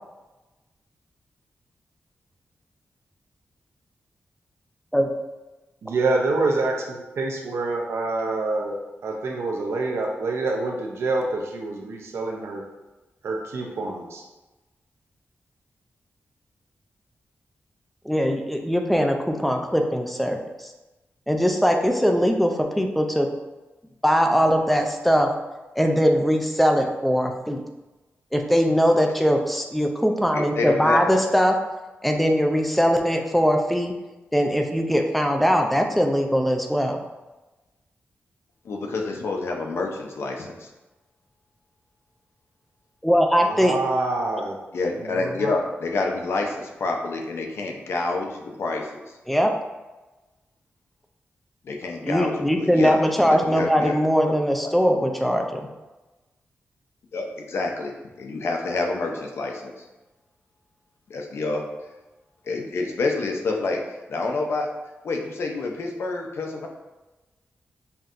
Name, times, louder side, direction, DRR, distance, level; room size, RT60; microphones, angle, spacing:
voice 1, 5.8-8.8 9.0-12.7 13.2-14.2 43.4-44.6 45.0-45.5, right 3 dB, 85° right, 1 dB, 0.6 m, -26 dB
voice 2, 18.1-20.4 21.3-23.3 24.0-25.3 25.8-27.6 28.3-31.5 32.0-33.9 34.3-37.0 43.0-43.7 49.3-49.5 52.1-55.6, equal, ahead, 3 dB, 0.5 m, -21 dB
voice 3, 30.3-31.0 38.6-40.6 44.7-49.0 51.6-53.9 54.2-54.3 57.1-57.9 58.2-59.7 61.1-61.6 62.5-63.8 64.1-64.7 65.0-66.7, left 3 dB, 75° left, 2 dB, 0.6 m, -28 dB
5.6 x 2.7 x 2.5 m, 1.1 s
wide cardioid pair, 90°, 4 cm